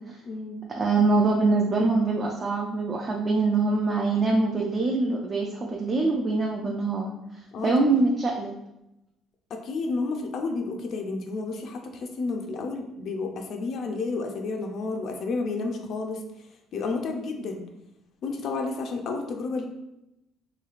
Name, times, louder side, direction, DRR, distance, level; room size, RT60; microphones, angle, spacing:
voice 1, 0.2-0.6 7.5-7.7 9.5-16.2 16.7-17.6 18.2-19.6, left 3 dB, 45° left, 3 dB, 0.4 m, -31 dB
voice 2, 0.8-7.1 7.6-8.5, right 3 dB, 25° right, -1 dB, 0.3 m, -24 dB
3.1 x 3.1 x 2.4 m, 0.89 s
cardioid pair, 160°, 0 cm